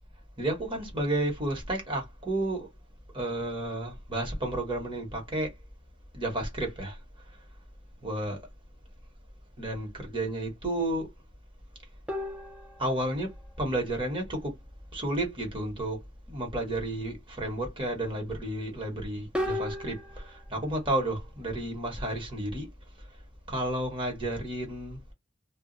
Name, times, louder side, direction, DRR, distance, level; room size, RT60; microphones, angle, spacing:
voice 1, 0.4-2.7 3.1-5.5 6.1-7.0 8.0-8.4 9.6-11.1 12.8-14.6 14.9-16.0 16.3-22.7 23.5-25.0, right 1 dB, 25° right, 1.0 m, -32 dB
sound 1, 12.1-13.3 19.3-20.4, left 1 dB, 5° right, 0.5 m, -34 dB
2.3 x 2.0 x 3.7 m
head